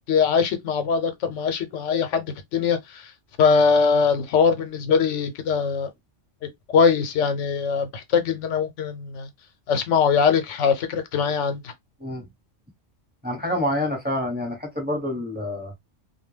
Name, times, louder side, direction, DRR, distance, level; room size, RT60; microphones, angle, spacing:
voice 1, 0.1-3.1 3.4-5.9 6.7-9.3 9.7-11.7, left 6 dB, 90° left, 1.0 m, -22 dB
voice 2, 13.2-15.7, left 1 dB, 10° right, 0.9 m, -27 dB
2.2 x 2.2 x 3.2 m
omnidirectional pair, 1.2 m